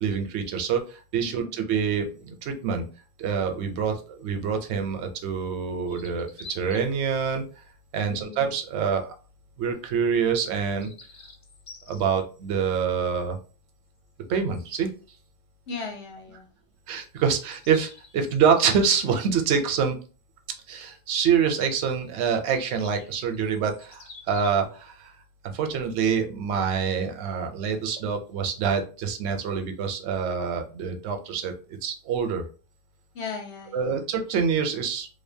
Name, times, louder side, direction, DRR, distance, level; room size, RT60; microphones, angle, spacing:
voice 1, 0.0-2.9 3.2-7.4 7.9-9.1 9.6-10.9 11.9-13.4 14.3-14.9 16.9-20.0 20.7-25.1 25.5-31.5 31.8-32.4 33.7-35.1, right 6 dB, 85° right, 5 dB, 0.8 m, -26 dB
sound 1, 5.9-7.0 7.5-7.7 8.5-8.7 10.5-12.1 14.5-14.6 14.9-15.0 17.3-19.7 21.5-21.6 22.4-24.6, left 3 dB, 50° left, 0.4 m, -48 dB
voice 2, 8.1-8.4 15.7-16.5 33.1-34.0, left 4 dB, 85° left, 1 dB, 1.0 m, -37 dB
2.7 x 2.0 x 2.6 m, 0.36 s
omnidirectional pair, 1.1 m